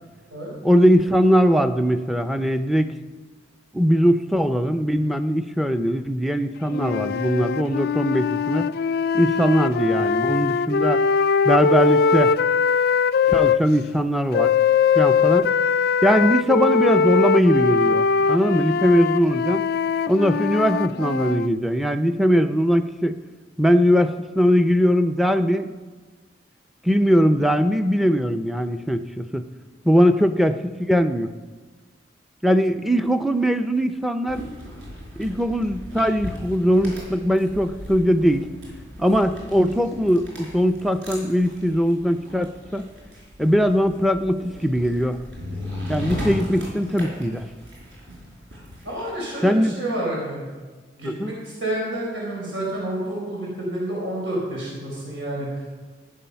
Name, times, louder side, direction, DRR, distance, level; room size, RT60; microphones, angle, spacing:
voice 1, 0.6-2.9 3.7-8.7 9.1-11.0 11.4-12.4 13.3-14.5 14.9-15.5 16.0-19.6 20.1-23.2 23.6-25.7 26.8-29.4 29.8-30.6 30.9-31.3 32.4-34.4 35.2-38.5 39.0-42.9 43.4-45.2 45.9-47.4 49.4-49.7 51.0-51.3, equal, ahead, 9 dB, 0.5 m, -20 dB
sound 1, 6.7-13.6 14.3-21.5, left 5 dB, 55° left, 0.3 m, -21 dB
voice 2, 29.9-30.3 48.8-50.5 51.0-55.6, right 1 dB, 85° right, -4 dB, 4.7 m, -29 dB
sound 2, 34.3-49.1, left 1 dB, 70° right, 5.3 m, -37 dB
15.5 x 9.4 x 5.7 m, 1.4 s
head